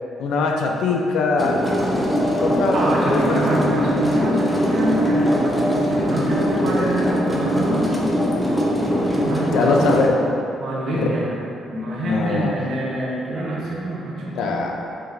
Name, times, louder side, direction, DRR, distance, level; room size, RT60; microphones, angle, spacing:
voice 1, 0.2-1.6 2.4-2.8 3.1-3.5 9.5-10.1 10.9-11.1 12.0-12.5 14.3-14.7, left 4 dB, 80° left, 1 dB, 0.4 m, -21 dB
sound 1, 1.4-10.1, equal, 10° left, 0.7 m, -21 dB
voice 2, 2.7-8.0 9.0-10.1 10.6-14.6, right 1 dB, 70° right, -5 dB, 0.9 m, -26 dB
5.1 x 3.0 x 2.6 m, 2.7 s
cardioid pair, 80°, 0 cm